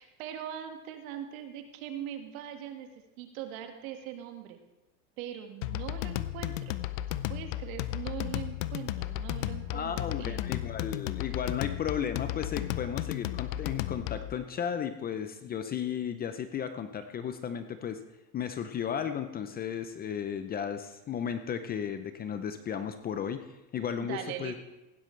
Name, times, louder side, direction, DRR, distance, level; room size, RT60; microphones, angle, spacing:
voice 1, 0.0-2.9 3.2-4.6 5.2-6.8 7.3-10.5 24.0-24.6, right 10 dB, 65° right, 5 dB, 1.9 m, -41 dB
sound 1, 5.6-14.3, left 14 dB, 60° left, 0.7 m, -34 dB
voice 2, 9.7-18.0 18.3-24.5, left 8 dB, 20° left, 9 dB, 0.5 m, -34 dB
16.0 x 11.5 x 3.3 m, 0.98 s
supercardioid pair, 120°, 45 cm